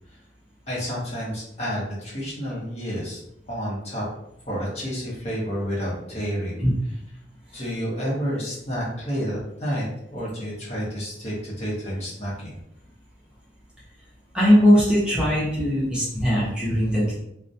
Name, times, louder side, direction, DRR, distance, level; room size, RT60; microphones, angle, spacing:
voice 1, 0.7-3.2 3.5-4.0 4.5-6.6 7.5-12.6, equal, 35° left, -5 dB, 0.7 m, -30 dB
voice 2, 14.3-17.1, equal, 5° right, -8 dB, 0.6 m, -19 dB
2.3 x 2.1 x 2.6 m, 0.79 s
head